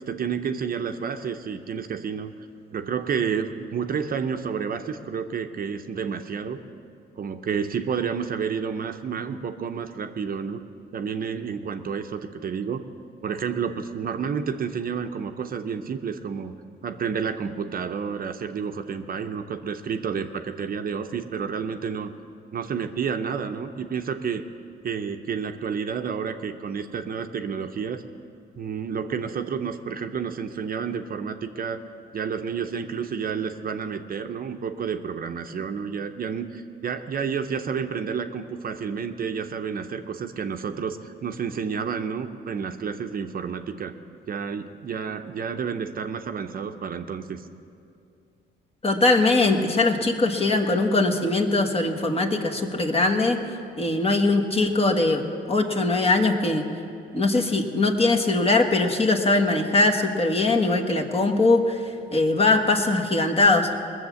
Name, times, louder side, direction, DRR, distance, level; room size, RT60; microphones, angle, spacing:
voice 1, 0.1-2.3 2.7-6.6 7.2-10.6 10.9-12.8 13.2-16.5 16.8-22.1 22.5-24.4 24.8-28.0 28.6-31.8 32.1-43.9 44.3-47.4, right 6 dB, 45° right, 7 dB, 0.7 m, -30 dB
voice 2, 48.8-53.4 53.8-55.2 55.5-56.6 57.1-61.8 62.1-63.7, left 2 dB, 30° left, 2 dB, 1.4 m, -21 dB
20.0 x 7.2 x 7.0 m, 2.5 s
cardioid pair, 90°, 20 cm